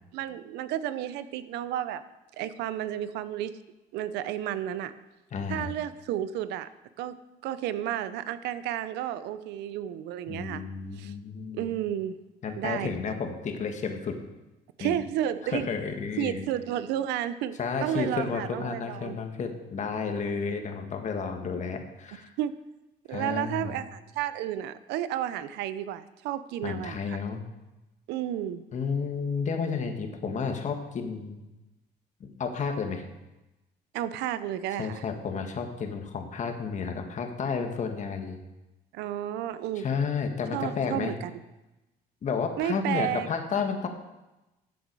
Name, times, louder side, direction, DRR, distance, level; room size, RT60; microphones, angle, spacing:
voice 1, 0.1-2.0 2.4-3.6 3.9-4.9 5.5-6.7 7.0-7.2 7.4-10.6 11.0-11.1 11.5-12.2 12.6-12.9 14.8-15.7 16.2-19.2 20.2-20.4 22.4-22.5 23.1-27.2 28.1-28.6 33.9-35.0 38.9-39.9 40.5-41.2 42.6-43.3, right 11 dB, 90° right, 14 dB, 0.7 m, -32 dB
voice 2, 5.3-5.7 10.3-11.7 12.4-14.2 14.8-15.0 15.5-16.4 17.6-22.3 23.1-23.7 26.6-27.4 28.7-31.4 32.2-33.0 34.8-38.4 39.8-41.1 42.2-43.9, left 5 dB, 45° left, 5 dB, 1.8 m, -31 dB
14.0 x 8.0 x 4.7 m, 1.0 s
cardioid pair, 110°, 17 cm